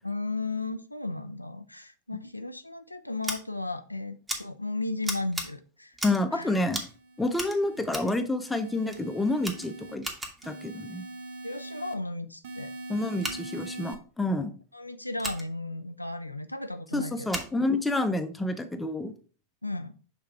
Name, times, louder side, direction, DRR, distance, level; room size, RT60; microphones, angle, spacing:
voice 1, 0.0-6.0 6.3-6.6 11.4-12.7 14.7-17.3 19.6-19.9, left 2 dB, 85° left, 9 dB, 0.4 m, -35 dB
Scissors, 3.2-3.4 4.3-4.4 5.0-5.5 5.9-6.3 6.7-7.0 7.3-8.2 8.9-9.0 9.4-10.5 13.1-13.4 15.2-15.4 17.3-17.5, right 1 dB, 10° right, 1.3 m, -36 dB
voice 2, 6.0-6.8 7.2-10.0 10.4-11.0 12.9-14.5 16.9-19.1, left 2 dB, 5° left, 7 dB, 0.7 m, -28 dB
sound 1, 6.9-7.9 8.4-10.0 10.4-11.9 12.4-13.9, right 2 dB, 55° right, 0.8 m, -42 dB
6.6 x 3.4 x 4.6 m, 0.39 s
figure-of-eight pair, 90°, 0 cm